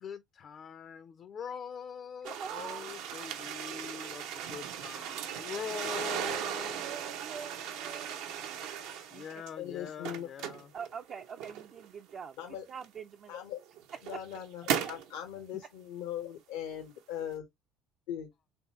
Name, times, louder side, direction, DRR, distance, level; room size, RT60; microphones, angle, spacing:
voice 1, 0.0-6.8 9.1-10.7, left 7 dB, 50° left, 0.5 m, -43 dB
voice 2, 2.2-2.9 6.7-8.6 9.1-9.4 10.7-13.3 14.1-14.2, right 7 dB, 45° right, 0.4 m, -45 dB
sound 1, 2.2-9.5 9.9-11.9 12.8-12.9 13.6-15.1, right 9 dB, 75° right, 0.8 m, -37 dB
voice 3, 9.6-10.3 12.4-12.7 13.3-13.6 14.0-17.5 18.1-18.3, left 10 dB, 85° left, 1.0 m, -40 dB
3.5 x 3.3 x 3.0 m
supercardioid pair, 95°, 0 cm